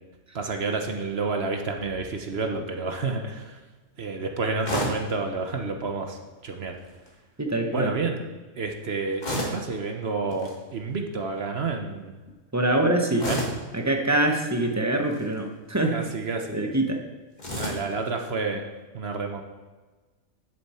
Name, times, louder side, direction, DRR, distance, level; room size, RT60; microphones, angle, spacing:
voice 1, 0.3-3.6 4.0-6.8 7.7-8.2 8.6-12.1 13.2-13.4 15.9-16.5 17.5-18.6 18.9-19.4, right 4 dB, 50° right, 4 dB, 1.0 m, -29 dB
sound 1, 4.6-5.1 6.8-7.1 9.2-9.7 10.3-10.6 13.2-13.7 15.0-15.4 17.4-17.9, left 1 dB, 35° left, 1.7 m, -31 dB
voice 2, 7.4-7.9 12.5-13.3 13.7-16.0 16.5-17.0, right 1 dB, 15° right, 4 dB, 0.8 m, -24 dB
11.0 x 7.2 x 4.3 m, 1.3 s
omnidirectional pair, 1.4 m